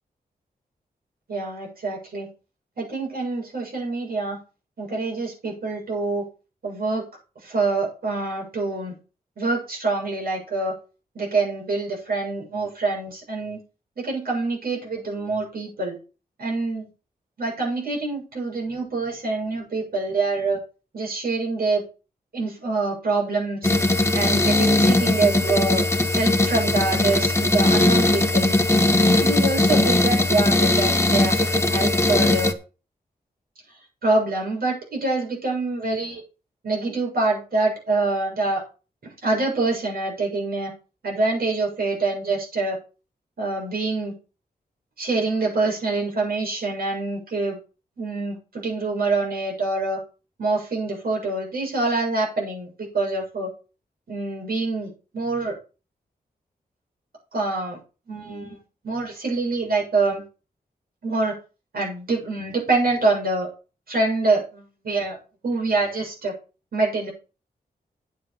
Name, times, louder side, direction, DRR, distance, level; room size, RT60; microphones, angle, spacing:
voice 1, 1.3-2.3 2.8-4.4 4.8-6.2 6.6-7.0 7.4-8.9 9.4-10.7 11.1-13.6 14.0-16.0 16.4-16.9 17.4-20.6 20.9-21.8 22.3-23.7 24.1-28.6 29.2-32.5 34.0-36.2 36.6-38.6 39.0-40.7 41.0-42.8 43.4-44.1 45.0-47.6 48.0-50.0 50.4-53.5 54.1-55.6 57.3-57.8 58.1-58.6 58.8-60.2 61.0-61.4 61.7-63.5 63.9-65.2 65.4-66.3 66.7-67.1, right 3 dB, 70° right, -1 dB, 7.3 m, -25 dB
sound 1, 23.6-32.5, left 2 dB, 15° left, 1.3 m, -19 dB
9.7 x 7.5 x 5.4 m, 0.34 s
wide cardioid pair, 90°, 16 cm